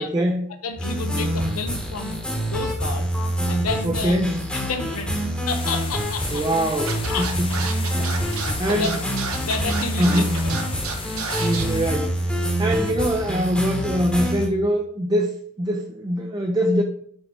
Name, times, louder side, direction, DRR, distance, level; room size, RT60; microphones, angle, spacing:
voice 1, 0.0-0.5 3.8-4.4 6.3-7.5 7.8-8.2 8.6-9.0 10.0-10.3 11.4-16.8, equal, 20° right, 3 dB, 0.4 m, -23 dB
voice 2, 0.6-3.1 3.5-4.2 4.5-6.4 7.1-7.3 8.3-8.9 9.4-10.6, left 4 dB, 80° left, 7 dB, 0.7 m, -31 dB
sound 1, 0.8-14.5, equal, 5° left, 1.0 m, -26 dB
sound 2, 5.5-11.9, left 5 dB, 25° left, 0.6 m, -36 dB
Scratching (performance technique), 6.9-11.6, right 6 dB, 70° right, 1.0 m, -30 dB
6.4 x 4.5 x 4.4 m, 0.64 s
head